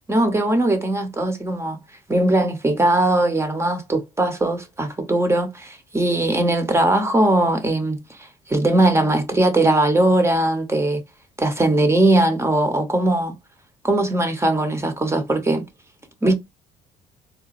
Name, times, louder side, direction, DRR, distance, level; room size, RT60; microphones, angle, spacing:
voice 1, 0.1-1.8 2.1-8.0 8.5-11.0 11.4-13.3 13.8-15.7 16.2-16.3, right 1 dB, 15° right, 0.8 m, -19 dB
3.9 x 2.2 x 2.5 m
cardioid pair, 110°, 17 cm